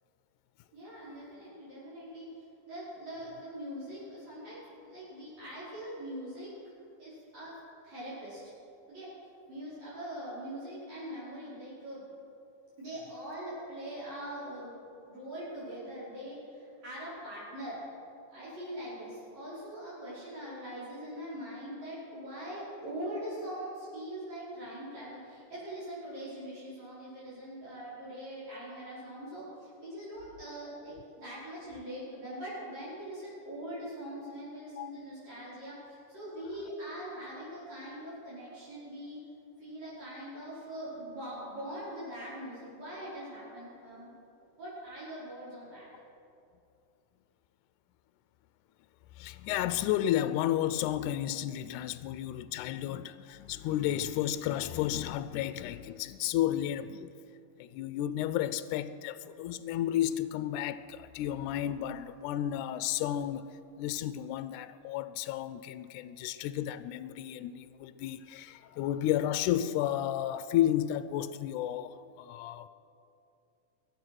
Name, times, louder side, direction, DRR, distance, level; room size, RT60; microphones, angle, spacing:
voice 1, 0.7-2.3 2.7-6.5 7.0-7.6 7.8-8.5 8.9-9.1 9.5-12.0 12.8-14.8 15.1-17.8 18.3-35.8 36.1-39.2 39.6-44.1 44.6-45.9, right 1 dB, 55° right, -9 dB, 6.5 m, -42 dB
voice 2, 49.2-57.1 57.6-72.7, left 12 dB, 80° left, 13 dB, 1.9 m, -32 dB
22.5 x 9.6 x 6.3 m, 2.6 s
omnidirectional pair, 3.8 m